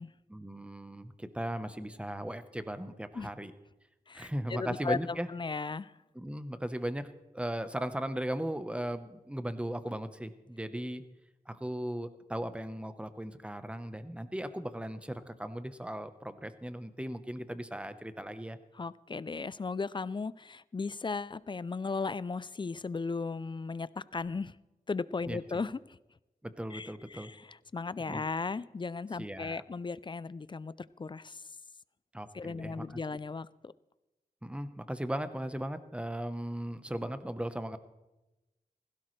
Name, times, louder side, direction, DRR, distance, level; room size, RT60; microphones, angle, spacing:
voice 1, 0.3-3.5 4.1-5.3 6.1-11.0 11.5-18.6 25.3-25.4 26.4-27.3 28.1-28.2 29.2-29.6 32.1-32.9 34.4-37.8, right 1 dB, 5° right, 10 dB, 0.9 m, -37 dB
voice 2, 4.1-5.9 18.7-24.6 24.9-26.0 26.7-31.4 32.3-33.7, left 4 dB, 30° left, 18 dB, 0.4 m, -36 dB
16.5 x 16.0 x 3.2 m, 1.0 s
wide cardioid pair, 80°, 15 cm